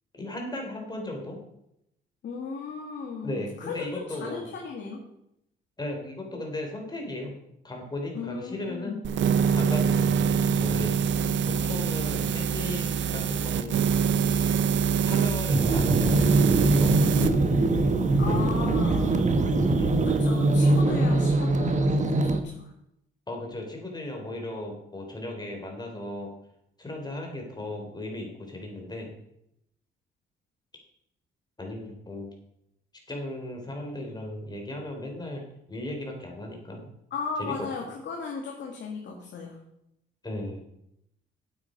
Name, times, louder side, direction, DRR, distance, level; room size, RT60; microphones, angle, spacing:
voice 1, 0.1-1.4 3.2-4.5 5.8-7.3 7.6-9.0 9.5-10.9 11.5-13.9 15.0-17.2 19.0-19.2 19.8-19.9 20.9-21.0 23.3-26.3 26.8-29.1 31.6-32.3 33.1-36.9 37.4-37.7 40.2-40.6, left 1 dB, 20° left, 2 dB, 3.8 m, -36 dB
voice 2, 2.2-5.0 8.1-9.0 18.2-19.3 20.0-22.7 37.1-39.6, left 5 dB, 65° left, 1 dB, 2.0 m, -36 dB
sound 1, 9.0-17.3, right 7 dB, 70° right, 0.8 m, -25 dB
sound 2, 15.5-22.4, right 2 dB, 35° right, 1.2 m, -22 dB
8.9 x 8.5 x 5.2 m, 0.78 s
cardioid pair, 90°, 20 cm